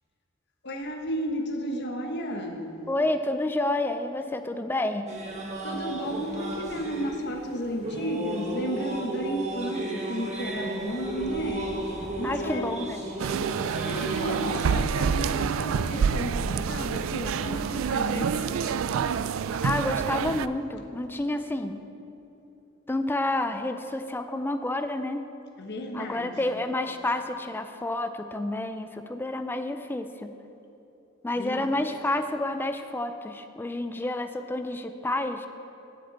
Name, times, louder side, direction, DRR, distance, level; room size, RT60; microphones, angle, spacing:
voice 1, 0.6-2.8 5.6-11.8 12.2-12.7 13.5-18.9 25.6-26.7 31.3-31.7, equal, 55° left, 3 dB, 1.1 m, -33 dB
voice 2, 2.9-5.1 12.2-13.0 19.6-21.8 22.9-25.3 25.9-30.3 31.2-35.5, left 2 dB, 10° left, 8 dB, 0.4 m, -29 dB
sound 1, 5.1-15.3, right 2 dB, 35° right, 1.5 m, -34 dB
sound 2, 13.2-20.5, right 6 dB, 75° right, 0.3 m, -27 dB
8.0 x 7.6 x 8.0 m, 3.0 s
head